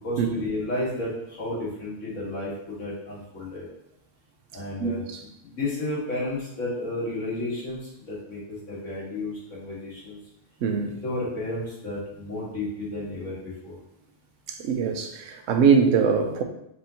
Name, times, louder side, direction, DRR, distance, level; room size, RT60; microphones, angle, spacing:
voice 1, 0.0-3.6 4.5-5.0 5.4-10.2 11.0-13.8, left 2 dB, 75° left, -6 dB, 2.0 m, -32 dB
voice 2, 10.6-10.9 14.5-16.4, right 6 dB, 85° right, 5 dB, 1.0 m, -22 dB
5.4 x 3.6 x 2.8 m, 0.80 s
omnidirectional pair, 1.3 m